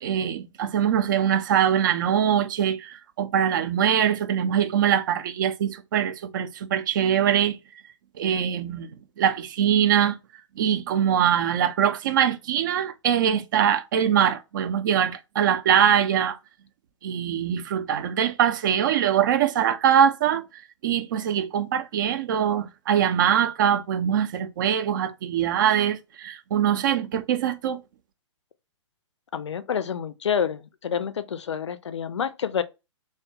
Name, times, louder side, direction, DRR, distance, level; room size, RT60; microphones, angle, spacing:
voice 1, 0.0-7.6 8.2-8.9 9.2-10.2 10.6-16.4 17.0-20.4 20.8-27.8, right 9 dB, 40° right, 0.4 m, -23 dB
voice 2, 29.3-32.6, left 7 dB, 65° left, 0.4 m, -28 dB
2.7 x 2.0 x 3.1 m
figure-of-eight pair, 115°, 16 cm